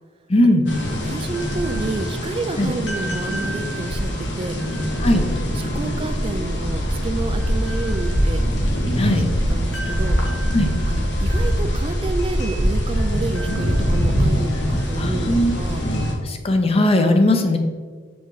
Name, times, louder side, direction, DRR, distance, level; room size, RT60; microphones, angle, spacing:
voice 1, 0.3-0.6 2.6-2.7 5.0-5.2 9.0-9.2 10.5-10.7 15.0-15.5 15.8-17.6, left 1 dB, 30° left, 5 dB, 0.7 m, -18 dB
sound 1, 0.7-16.1, equal, 75° left, 1.3 m, -23 dB
voice 2, 1.0-4.8 5.1-8.4 9.1-9.2 9.5-10.2 10.9-15.8, right 3 dB, 30° right, 8 dB, 0.3 m, -30 dB
6.9 x 5.1 x 3.9 m, 1.5 s
head